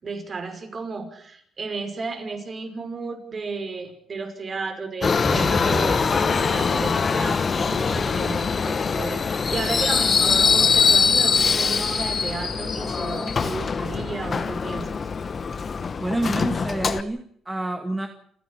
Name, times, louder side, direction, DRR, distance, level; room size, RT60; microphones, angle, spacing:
voice 1, 0.0-15.1, right 4 dB, 40° right, 6 dB, 5.8 m, -33 dB
Subway metro underground, 5.0-17.0, left 5 dB, 40° left, 1.3 m, -22 dB
sound 1, 5.2-7.3, equal, 5° left, 3.3 m, -32 dB
voice 2, 16.0-18.1, right 1 dB, 15° right, 5 dB, 2.1 m, -28 dB
29.0 x 10.5 x 9.8 m, 0.64 s
cardioid pair, 90°, 0 cm